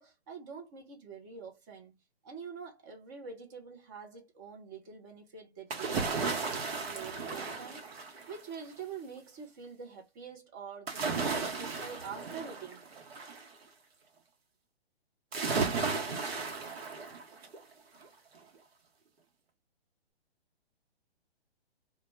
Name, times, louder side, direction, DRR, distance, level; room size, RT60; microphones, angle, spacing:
voice 1, 0.0-2.0 2.2-6.3 6.7-12.9, right 5 dB, 20° right, 0.4 m, -46 dB
sound 1, 5.7-8.5 10.9-13.5 15.3-17.6 18.0-18.1, right 4 dB, 65° right, 0.8 m, -34 dB
2.1 x 2.1 x 3.1 m
figure-of-eight pair, 130°, 32 cm